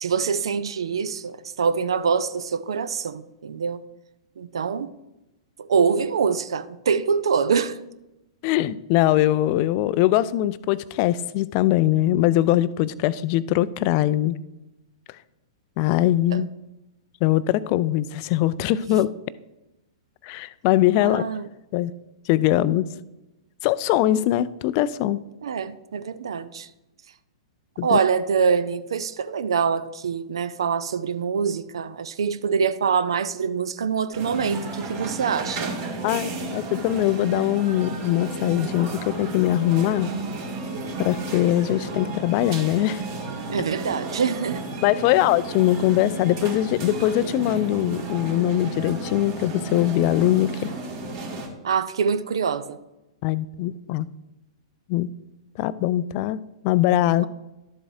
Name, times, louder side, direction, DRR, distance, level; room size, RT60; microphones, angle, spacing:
voice 1, 0.0-3.8 4.4-4.9 5.6-7.8 16.3-16.4 18.9-19.0 21.0-21.5 25.4-26.7 27.8-35.7 43.5-44.6 51.6-52.8 57.2-57.3, right 6 dB, 65° right, 0.5 m, -24 dB
voice 2, 8.4-14.4 15.8-16.5 17.2-19.1 20.2-21.2 21.7-21.9 22.3-22.9 23.6-25.2 27.8-28.0 36.0-40.1 41.0-43.0 44.8-50.7 53.2-54.1 54.9-55.1 55.6-56.4 56.6-57.3, left 14 dB, 40° left, 0.3 m, -22 dB
sound 1, 34.1-51.5, right 2 dB, 45° right, 2.1 m, -33 dB
12.0 x 7.7 x 2.6 m
figure-of-eight pair, 105°, 3 cm